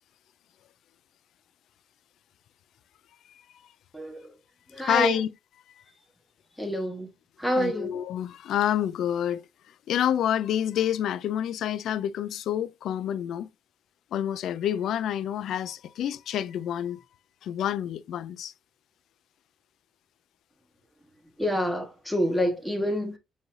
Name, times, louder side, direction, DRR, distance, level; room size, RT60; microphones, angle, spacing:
voice 1, 3.9-4.4 4.7-5.2 6.6-7.1 7.4-8.0 21.4-23.2, equal, ahead, 1.4 m, -28 dB
voice 2, 4.8-5.3 7.6-9.4 9.9-13.5 14.1-17.0 17.4-18.5, left 10 dB, 75° left, 0.3 m, -28 dB
5.4 x 3.2 x 2.6 m
cardioid pair, 90°, 0 cm